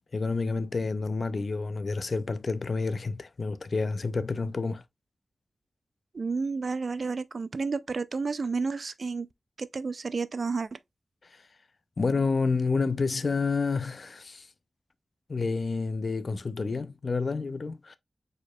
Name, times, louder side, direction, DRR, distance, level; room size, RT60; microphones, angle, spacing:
voice 1, 0.1-4.8 12.0-14.5 15.3-18.0, left 4 dB, 45° left, 0.4 m, -29 dB
voice 2, 6.1-9.3 9.6-10.8, right 4 dB, 50° right, 0.3 m, -31 dB
4.8 x 4.2 x 2.2 m
wide cardioid pair, 150°, 0 cm